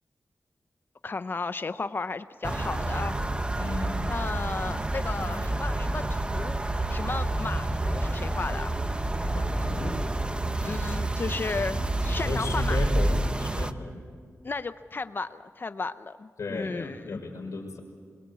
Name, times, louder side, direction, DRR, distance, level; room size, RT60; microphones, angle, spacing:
voice 1, 1.0-3.2 4.1-6.6 6.9-8.7 10.6-12.9 14.4-17.2, left 4 dB, 40° left, 12 dB, 0.6 m, -34 dB
sound 1, 2.4-13.7, right 1 dB, 20° right, 0.9 m, -29 dB
voice 2, 3.6-4.0 9.3-10.0 12.2-14.1 16.4-17.8, left 3 dB, 75° left, -3 dB, 5.3 m, -34 dB
25.5 x 22.5 x 8.3 m, 2.1 s
wide cardioid pair, 105°, 5 cm